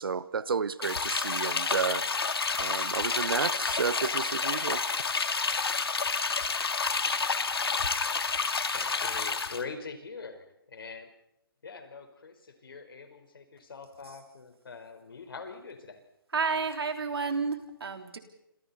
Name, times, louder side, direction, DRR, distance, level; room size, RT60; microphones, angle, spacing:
voice 1, 0.0-2.0 2.6-4.8, right 5 dB, 70° right, 17 dB, 1.1 m, -31 dB
sound 1, 0.8-9.6, left 4 dB, 85° left, 2.2 m, -29 dB
voice 2, 8.7-11.1 11.6-16.0, left 4 dB, 70° left, 7 dB, 4.5 m, -43 dB
voice 3, 16.3-18.2, right 5 dB, 90° right, 5 dB, 3.8 m, -30 dB
29.0 x 27.0 x 4.2 m, 0.84 s
hypercardioid pair, 170°, 12 cm